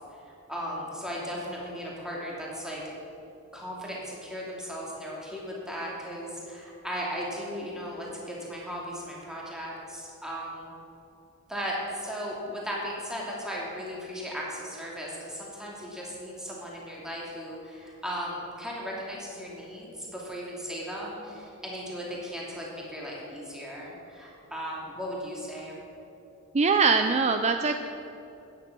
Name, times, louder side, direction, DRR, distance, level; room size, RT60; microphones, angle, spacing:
voice 1, 0.5-2.8 3.5-10.7 11.5-25.8, equal, 5° right, -4 dB, 2.8 m, -36 dB
voice 2, 26.5-27.7, right 4 dB, 30° right, 7 dB, 0.5 m, -22 dB
15.0 x 10.0 x 6.1 m, 2.8 s
head